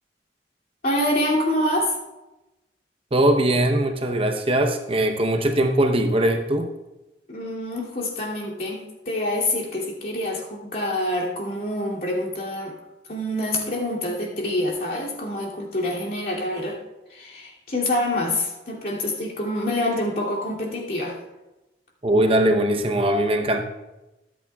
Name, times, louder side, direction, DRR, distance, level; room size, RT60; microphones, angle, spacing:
voice 1, 0.8-2.0 7.3-12.8 13.1-16.8 17.1-21.2, left 1 dB, 50° left, -4 dB, 2.6 m, -26 dB
voice 2, 3.1-6.7 22.0-23.6, right 1 dB, 30° right, 4 dB, 0.8 m, -20 dB
24.0 x 8.5 x 2.3 m, 1.0 s
head